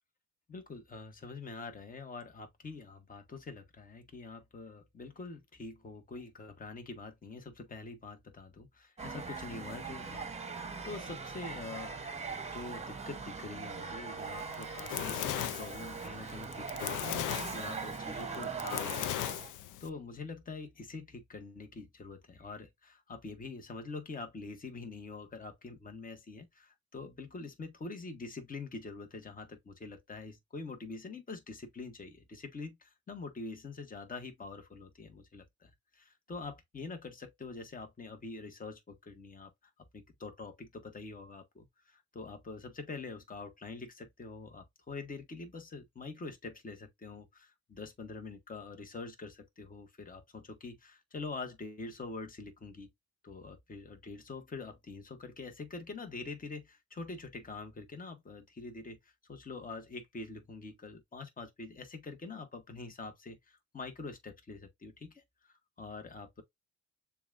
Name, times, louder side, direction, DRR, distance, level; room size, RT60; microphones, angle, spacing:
voice 1, 0.5-12.0 12.5-19.3 19.8-39.5 39.9-52.9 53.2-66.4, left 3 dB, 30° left, 1.2 m, -45 dB
sound 1, 9.0-19.5, right 4 dB, 20° right, 0.9 m, -41 dB
Fire, 14.4-19.9, left 12 dB, 85° left, 0.5 m, -37 dB
6.9 x 2.4 x 2.5 m
cardioid pair, 90°, 30 cm